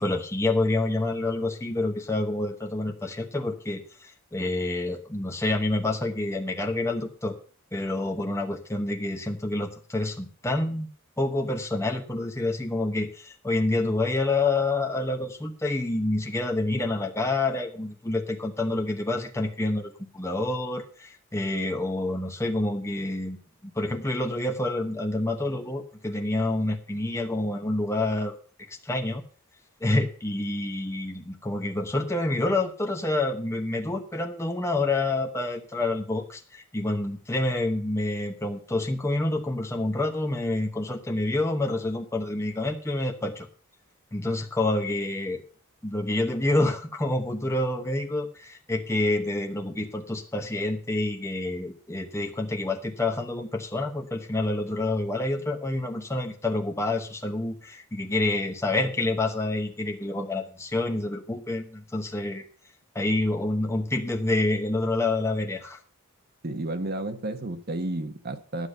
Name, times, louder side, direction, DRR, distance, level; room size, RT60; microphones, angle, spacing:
voice 1, 0.0-7.4 7.7-10.9 11.2-28.3 28.7-29.2 29.8-43.5 44.1-45.4 45.8-62.4 62.9-65.8, left 2 dB, 15° left, 3 dB, 1.0 m, -28 dB
voice 2, 66.4-68.7, right 2 dB, 45° right, 8 dB, 1.1 m, -32 dB
10.0 x 6.9 x 6.6 m, 0.41 s
head